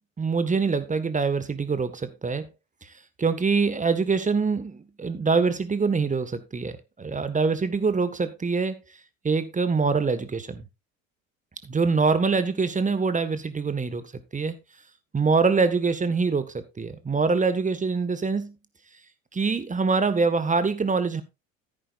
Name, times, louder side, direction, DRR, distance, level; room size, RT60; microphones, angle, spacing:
voice 1, 0.2-2.5 2.8-2.9 3.2-8.8 9.2-10.7 11.6-14.5 15.1-18.6 19.3-21.2, right 4 dB, 20° right, 1.6 m, -24 dB
14.5 x 9.1 x 2.5 m
hypercardioid pair, 75°, 40 cm